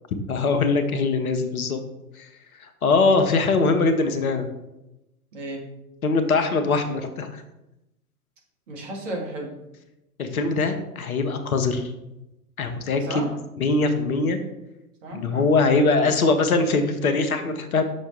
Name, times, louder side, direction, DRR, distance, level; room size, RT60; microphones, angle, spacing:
voice 1, 0.3-1.8 2.2-2.3 2.8-4.5 6.0-7.4 10.2-11.9 12.6-13.0 13.6-14.4 15.1-17.8, left 3 dB, 65° left, 7 dB, 1.0 m, -22 dB
voice 2, 5.3-5.6 8.7-9.6 12.8-13.3 15.0-15.5, right 1 dB, 50° right, 0 dB, 2.0 m, -34 dB
6.4 x 5.8 x 3.3 m, 0.93 s
figure-of-eight pair, 105°, 47 cm